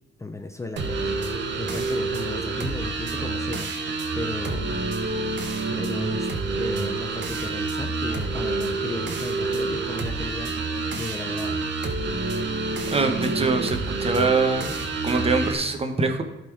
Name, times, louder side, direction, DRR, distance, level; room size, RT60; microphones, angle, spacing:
voice 1, 0.2-4.8 5.8-6.3 6.6-11.7, left 2 dB, 15° left, 6 dB, 0.6 m, -35 dB
sound 1, 0.8-15.5, right 3 dB, 65° right, 1.2 m, -28 dB
voice 2, 12.9-14.8 15.0-16.2, right 3 dB, 30° right, 6 dB, 1.3 m, -24 dB
12.0 x 4.4 x 4.9 m, 1.0 s
cardioid pair, 90°, 20 cm